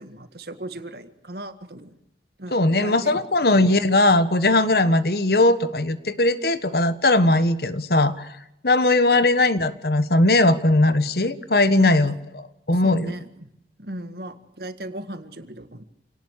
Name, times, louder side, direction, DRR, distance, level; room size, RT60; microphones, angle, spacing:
voice 1, 0.0-1.9 2.4-3.2 3.5-3.7 11.8-12.2 12.7-13.5 13.8-15.8, right 1 dB, 60° right, 9 dB, 2.0 m, -37 dB
voice 2, 2.5-8.4 8.6-12.1 12.7-13.1, left 2 dB, 60° left, 13 dB, 1.4 m, -19 dB
28.0 x 18.5 x 6.7 m, 0.83 s
head